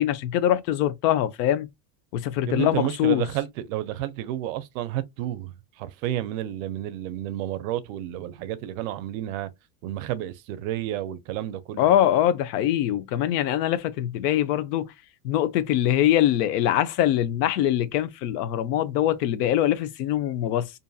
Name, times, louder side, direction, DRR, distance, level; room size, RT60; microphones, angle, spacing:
voice 1, 0.0-1.7 2.1-3.3 11.8-14.9 15.2-20.7, left 11 dB, 75° left, 0.6 m, -23 dB
voice 2, 2.5-9.5 9.8-12.0, right 13 dB, 55° right, 0.5 m, -31 dB
2.6 x 2.6 x 2.2 m
cardioid pair, 175°, 49 cm